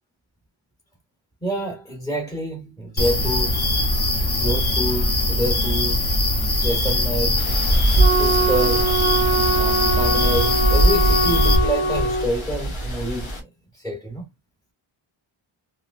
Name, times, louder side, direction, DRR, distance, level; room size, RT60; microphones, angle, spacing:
voice 1, 1.4-3.8 4.4-6.0 6.6-7.4 8.2-9.0 9.6-13.3 13.8-14.2, equal, 5° left, 1.0 m, -27 dB
sound 1, 3.0-11.6, left 1 dB, 50° left, 1.1 m, -21 dB
sound 2, 7.4-13.4, right 1 dB, 70° left, 1.3 m, -24 dB
Wind instrument woodwind instrument, 8.0-12.3, right 2 dB, 25° left, 0.6 m, -22 dB
3.1 x 2.9 x 2.5 m
wide cardioid pair, 175°, 48 cm